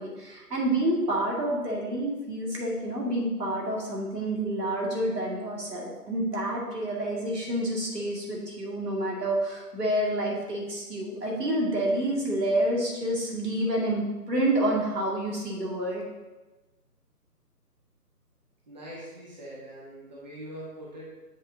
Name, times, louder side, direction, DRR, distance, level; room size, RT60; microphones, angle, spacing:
voice 1, 0.0-16.0, right 1 dB, 75° right, -3 dB, 2.4 m, -28 dB
voice 2, 18.7-21.0, right 1 dB, 25° right, -7 dB, 1.4 m, -42 dB
7.6 x 6.5 x 2.8 m, 1.2 s
figure-of-eight pair, 160°, 48 cm